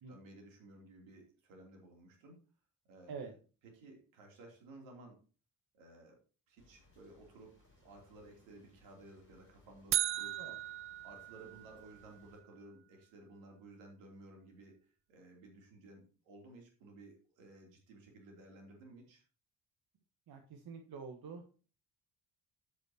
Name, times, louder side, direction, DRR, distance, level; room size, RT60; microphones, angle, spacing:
voice 1, 0.1-2.4 2.9-3.2 3.6-5.2 5.7-6.2 6.5-7.6 7.8-10.4 11.0-19.2, right 2 dB, 70° right, 1 dB, 3.3 m, -56 dB
sound 1, 6.6-12.4, left 1 dB, 80° left, 5.4 m, -67 dB
sound 2, 9.9-12.0, right 12 dB, 30° right, 0.3 m, -37 dB
voice 2, 20.3-21.4, right 5 dB, 50° right, 4 dB, 1.5 m, -46 dB
12.0 x 8.4 x 2.9 m, 0.36 s
figure-of-eight pair, 45°, 48 cm